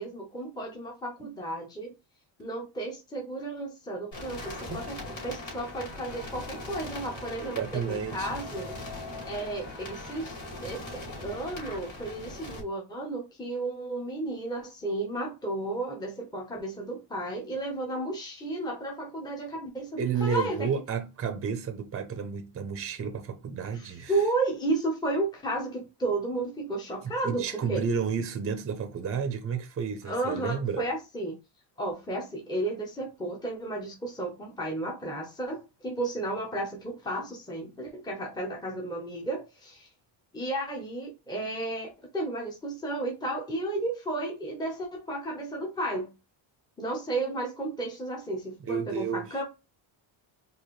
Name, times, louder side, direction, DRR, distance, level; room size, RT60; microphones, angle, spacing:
voice 1, 0.0-1.9 2.4-8.8 9.2-10.3 10.6-20.7 23.7-27.8 30.0-31.3 31.8-39.9 40.3-46.1 46.8-49.4, right 2 dB, 10° left, 0.9 m, -33 dB
sound 1, 4.1-12.6, left 2 dB, 35° left, 2.5 m, -40 dB
voice 2, 7.4-8.3 20.0-24.1 27.2-30.8 48.7-49.3, right 6 dB, 30° right, 0.7 m, -31 dB
4.7 x 2.7 x 3.1 m
cardioid pair, 145°, 48 cm